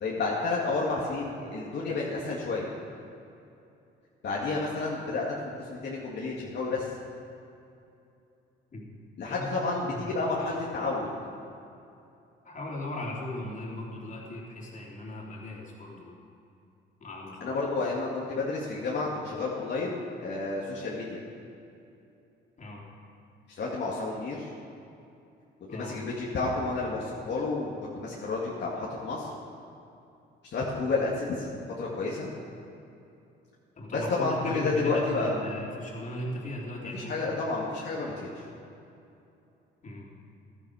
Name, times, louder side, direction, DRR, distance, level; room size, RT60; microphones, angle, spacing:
voice 1, 0.0-2.7 4.2-5.2 5.7-6.9 9.2-11.1 17.4-21.2 23.5-24.5 25.6-29.3 30.4-31.5 31.8-32.3 33.9-35.4 36.8-38.4, left 3 dB, 60° left, -5 dB, 2.2 m, -30 dB
voice 2, 9.2-10.2 12.4-16.2 17.0-17.6 22.6-22.9 25.7-26.0 33.7-37.1 39.8-40.1, left 1 dB, 40° left, -3 dB, 3.4 m, -38 dB
15.0 x 12.0 x 4.9 m, 2.7 s
cardioid pair, 90°, 20 cm